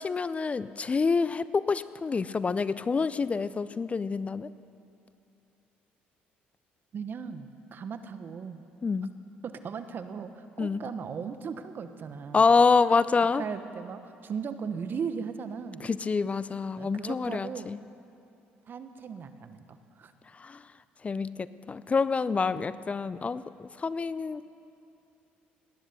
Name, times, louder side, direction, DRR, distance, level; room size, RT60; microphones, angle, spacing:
voice 1, 0.0-4.5 8.8-9.1 10.6-10.8 12.3-13.4 15.8-17.8 20.3-20.7 21.0-24.5, left 4 dB, 30° left, 16 dB, 0.4 m, -27 dB
voice 2, 6.9-8.6 9.4-12.5 13.4-15.9 16.7-17.7 18.7-20.1 22.5-22.7, right 6 dB, 50° right, 10 dB, 1.1 m, -37 dB
18.5 x 10.0 x 6.9 m, 2.6 s
supercardioid pair, 75°, 4 cm